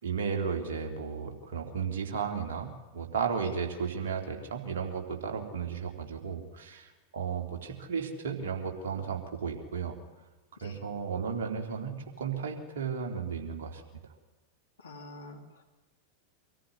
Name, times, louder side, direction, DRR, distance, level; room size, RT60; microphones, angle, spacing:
voice 1, 0.0-9.9 10.6-13.8, right 6 dB, 60° right, 2 dB, 3.5 m, -34 dB
voice 2, 14.8-15.6, left 2 dB, 70° left, 3 dB, 3.5 m, -47 dB
25.0 x 14.0 x 9.6 m, 1.1 s
figure-of-eight pair, 90°, 0 cm